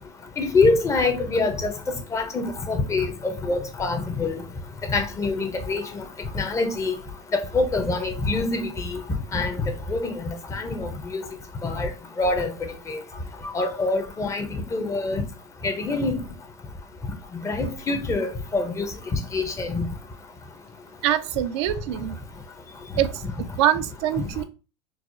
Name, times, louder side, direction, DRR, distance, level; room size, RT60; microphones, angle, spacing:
voice 1, 0.4-1.7 2.1-4.4 4.9-6.0 6.3-6.9 7.3-9.0 9.3-9.6 9.9-11.2 11.6-11.9 12.2-12.5 12.9-13.0 13.5-15.2 15.6-16.2 17.4-18.9 19.3-19.9 24.2-24.3, left 3 dB, 20° left, 0.6 m, -25 dB
voice 2, 21.0-22.2 23.0-23.2 23.6-24.4, right 12 dB, 75° right, 0.4 m, -24 dB
4.6 x 2.0 x 2.5 m
supercardioid pair, 115°, 15 cm